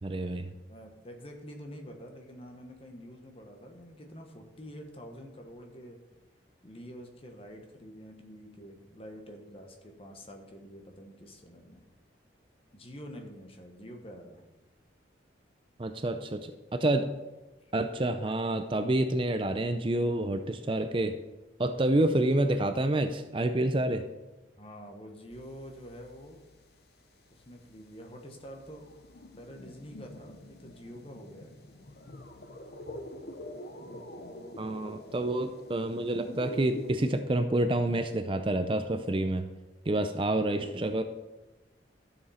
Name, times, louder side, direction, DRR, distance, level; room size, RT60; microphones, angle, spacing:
voice 1, 0.0-0.5 15.8-17.1 17.7-21.1 21.6-24.0 34.6-39.5 39.9-41.0, right 1 dB, 30° right, 8 dB, 0.5 m, -28 dB
voice 2, 0.7-6.0 6.6-11.9 12.7-14.4 24.6-26.4 27.3-28.9 29.4-31.5 33.7-34.6, equal, 30° left, 4 dB, 1.2 m, -47 dB
sound 1, 25.3-26.8 27.1-37.2, left 1 dB, 55° left, 0.8 m, -47 dB
12.5 x 7.1 x 4.3 m, 1.1 s
head